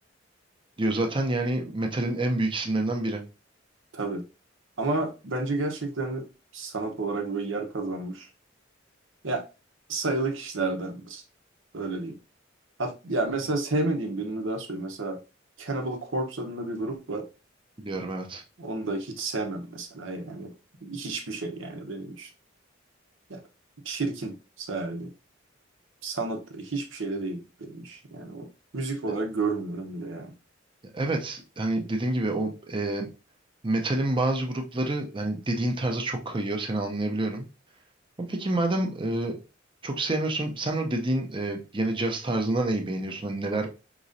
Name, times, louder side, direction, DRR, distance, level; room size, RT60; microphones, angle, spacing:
voice 1, 0.8-3.2 17.8-18.4 30.9-33.1 33.6-37.4 38.2-39.4 39.8-43.7, right 2 dB, 25° right, 0.7 m, -28 dB
voice 2, 4.8-6.3 6.5-8.3 9.2-9.5 9.9-11.2 11.7-12.2 12.8-15.2 15.6-17.3 18.6-20.5 20.8-22.3 23.3-23.4 23.8-25.1 26.0-28.5 28.7-30.3, right 2 dB, 75° right, 0.9 m, -31 dB
5.0 x 3.0 x 2.7 m
head